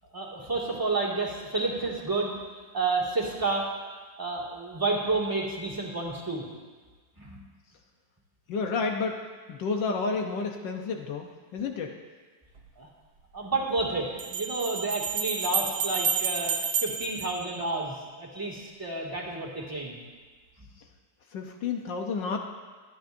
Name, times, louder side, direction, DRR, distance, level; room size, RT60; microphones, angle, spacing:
voice 1, 0.1-2.4 2.7-3.7 4.2-6.5 7.2-7.4 12.8-12.9 13.3-20.0, right 3 dB, 10° right, -4 dB, 2.0 m, -30 dB
voice 2, 8.5-9.2 9.5-11.9 21.3-22.4, left 4 dB, 75° left, 2 dB, 1.5 m, -30 dB
sound 1, 12.6-12.7 14.2-18.2, right 5 dB, 60° right, 1.7 m, -30 dB
25.5 x 9.3 x 2.6 m, 1.4 s
omnidirectional pair, 2.0 m